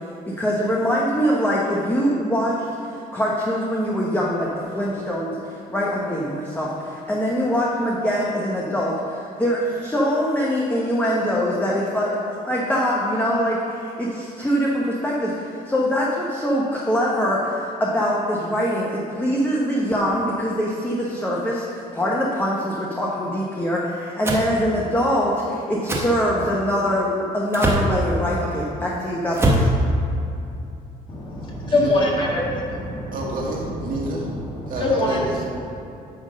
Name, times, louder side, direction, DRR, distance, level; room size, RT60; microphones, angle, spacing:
voice 1, 0.3-5.4 5.7-21.6 21.9-29.7, equal, 10° left, -4 dB, 1.1 m, -23 dB
sound 1, 24.2-24.5 25.9-26.1 27.5-27.9 29.3-29.7, right 1 dB, 15° right, 1.3 m, -20 dB
voice 2, 31.1-33.2 34.5-35.2, left 2 dB, 30° left, -4 dB, 2.0 m, -23 dB
voice 3, 33.1-34.3 34.7-35.4, right 2 dB, 55° right, -3 dB, 2.1 m, -29 dB
10.0 x 3.6 x 6.5 m, 2.7 s
cardioid pair, 110°, 17 cm